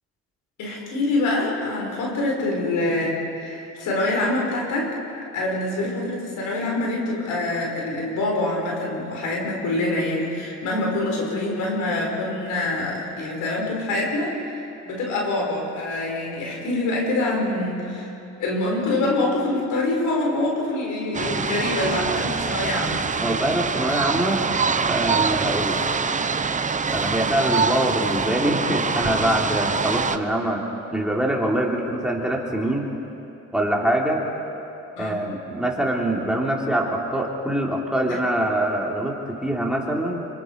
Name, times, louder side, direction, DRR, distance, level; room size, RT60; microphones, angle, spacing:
voice 1, 0.6-5.0 5.3-14.6 14.8-18.1 18.4-23.0 35.0-35.3 38.1-38.2 38.5-38.6, left 2 dB, 85° left, -1 dB, 5.1 m, -25 dB
sound 1, 21.1-30.2, right 5 dB, 25° right, 0.8 m, -24 dB
voice 2, 23.2-24.4 24.9-25.8 26.9-30.6 30.9-32.9 33.5-34.2 35.0-40.3, right 1 dB, 5° right, -2 dB, 3.6 m, -24 dB
26.0 x 24.5 x 4.8 m, 2.9 s
cardioid pair, 90°, 30 cm